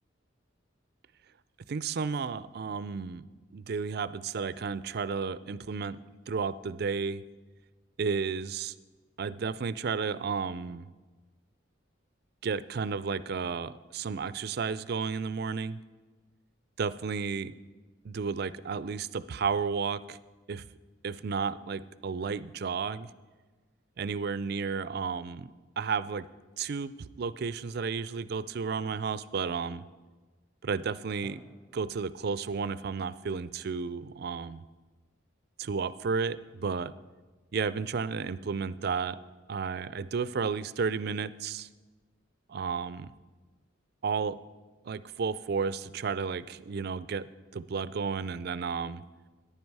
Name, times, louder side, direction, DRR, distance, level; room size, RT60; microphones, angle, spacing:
voice 1, 1.7-3.3 3.5-7.2 8.0-8.7 9.2-10.9 12.4-15.8 16.8-17.6 18.0-20.2 20.5-20.7 21.0-23.1 24.0-26.3 26.6-29.8 30.6-31.4 31.7-34.6 35.6-36.9 37.5-39.2 39.5-41.7 42.5-43.1 44.0-44.4 44.8-49.1, right 5 dB, 55° right, 16 dB, 0.4 m, -32 dB
Drum, 31.2-34.9, equal, 5° left, 1.0 m, -59 dB
15.0 x 10.0 x 4.7 m, 1.3 s
head